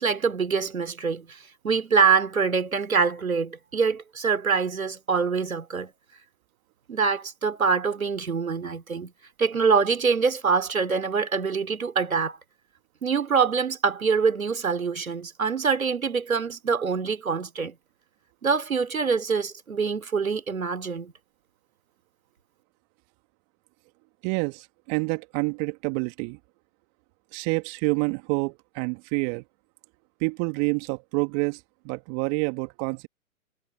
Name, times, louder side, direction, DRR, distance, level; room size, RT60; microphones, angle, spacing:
voice 1, 0.0-5.9 6.9-9.1 9.4-12.4 13.0-17.7 18.4-21.1, right 5 dB, 75° right, 3.1 m, -25 dB
voice 2, 24.2-26.4 27.3-29.4 30.2-33.1, right 34 dB, 30° right, 2.4 m, -28 dB
figure-of-eight pair, 125°, 41 cm